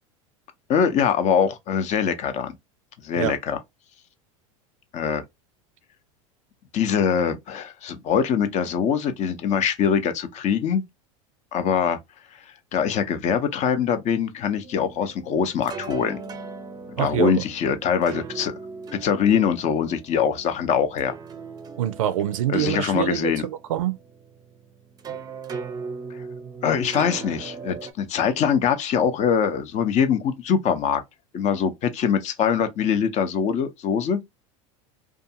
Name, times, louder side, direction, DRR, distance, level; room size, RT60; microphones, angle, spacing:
voice 1, 0.7-2.6 3.0-3.6 4.9-5.2 6.7-10.8 11.5-12.0 12.7-16.2 17.0-18.5 19.0-21.1 22.5-23.4 26.1-26.2 26.6-31.0 31.3-34.2, left 7 dB, 45° left, 0.6 m, -23 dB
sound 1, 14.6-27.9, right 5 dB, 25° right, 0.5 m, -39 dB
voice 2, 17.0-17.4 21.8-24.0, right 12 dB, 90° right, 0.4 m, -25 dB
2.5 x 2.3 x 2.7 m
hypercardioid pair, 105°, 17 cm